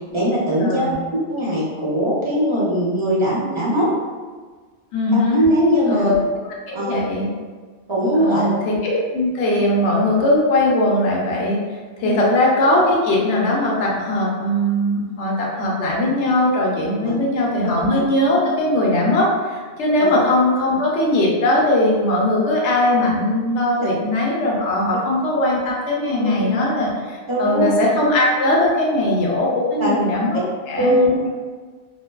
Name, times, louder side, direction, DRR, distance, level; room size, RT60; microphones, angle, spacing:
voice 1, 0.1-0.9 1.3-3.9 5.1-6.1 6.7-6.9 7.9-8.5 12.0-12.2 17.0-17.2 17.9-18.0 20.0-20.1 26.2-26.6 27.3-27.7 29.8-29.9 30.8-31.1, equal, 50° right, -8 dB, 0.3 m, -20 dB
voice 2, 0.6-0.9 4.9-5.4 5.9-6.2 6.4-7.3 8.1-11.6 12.0-30.4 30.7-31.3, left 1 dB, 75° left, -3 dB, 0.9 m, -19 dB
2.5 x 2.2 x 2.2 m, 1.4 s
omnidirectional pair, 1.2 m